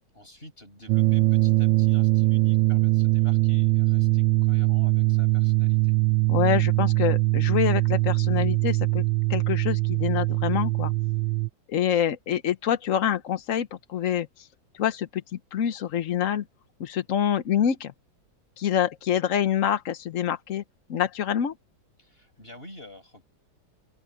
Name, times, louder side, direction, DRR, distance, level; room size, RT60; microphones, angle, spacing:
voice 1, 0.1-6.0 22.0-23.3, left 1 dB, 25° left, 8.1 m, -48 dB
sound 1, 0.9-11.5, right 20 dB, 75° right, 1.2 m, -22 dB
voice 2, 6.3-9.0 9.3-10.9 11.7-14.5 14.7-16.4 16.8-17.9 18.6-20.6 20.9-21.5, left 9 dB, 55° left, 0.9 m, -26 dB
omnidirectional pair, 2.2 m